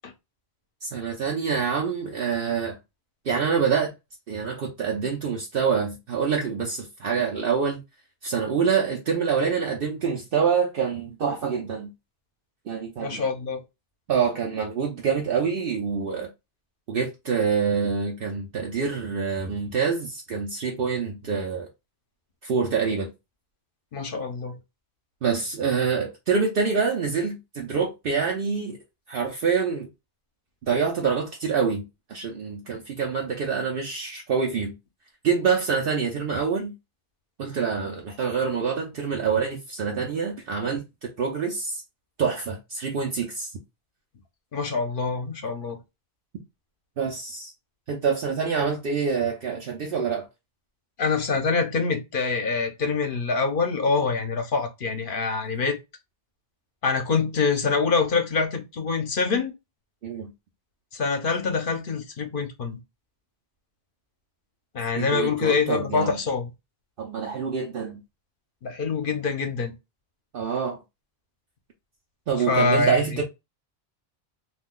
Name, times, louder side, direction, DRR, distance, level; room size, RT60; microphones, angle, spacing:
voice 1, 0.8-2.8 3.2-3.9 4.3-7.8 8.2-11.9 12.7-13.2 14.1-16.3 16.9-21.7 22.4-23.1 25.2-28.8 29.1-29.9 30.7-31.8 32.1-34.7 35.2-36.7 37.4-41.8 42.2-43.5 47.0-47.5 47.9-50.3 60.0-60.3 65.0-66.2 67.0-68.0 70.3-70.8 72.3-73.2, right 6 dB, 65° right, 0.8 m, -26 dB
voice 2, 13.0-13.6 23.9-24.6 44.5-45.8 51.0-55.8 56.8-59.5 60.9-62.8 64.7-66.5 68.6-69.7 72.5-73.0, left 4 dB, 60° left, 0.8 m, -25 dB
2.5 x 2.2 x 3.5 m
omnidirectional pair, 1.1 m